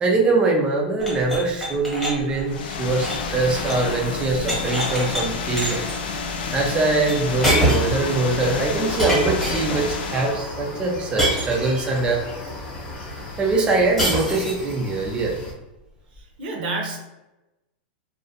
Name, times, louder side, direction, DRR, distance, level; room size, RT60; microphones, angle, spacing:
voice 1, 0.0-5.8 6.5-12.2 13.4-15.3, right 3 dB, 20° right, -1 dB, 0.4 m, -22 dB
sound 1, 1.0-3.9 4.2-5.2 5.6-6.0 7.1-7.2 7.4-8.0 9.0-9.9 11.2-12.0 14.0-14.7, equal, 5° left, 1.0 m, -25 dB
sound 2, 2.5-10.4, left 4 dB, 70° left, 0.4 m, -29 dB
sound 3, 7.3-15.5, left 2 dB, 25° left, 0.6 m, -35 dB
voice 2, 16.2-17.0, right 2 dB, 70° right, 0 dB, 0.7 m, -29 dB
2.4 x 2.0 x 2.7 m, 0.98 s
supercardioid pair, 140°, 5 cm